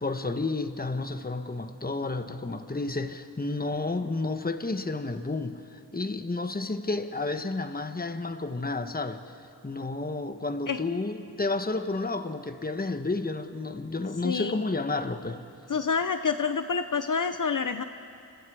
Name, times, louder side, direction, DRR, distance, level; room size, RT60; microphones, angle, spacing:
voice 1, 0.0-9.2 9.6-15.4, left 3 dB, 25° left, 1.1 m, -31 dB
voice 2, 14.2-14.6 15.7-17.8, left 5 dB, 55° left, 0.8 m, -28 dB
29.0 x 27.5 x 4.9 m
wide cardioid pair, 85°, 38 cm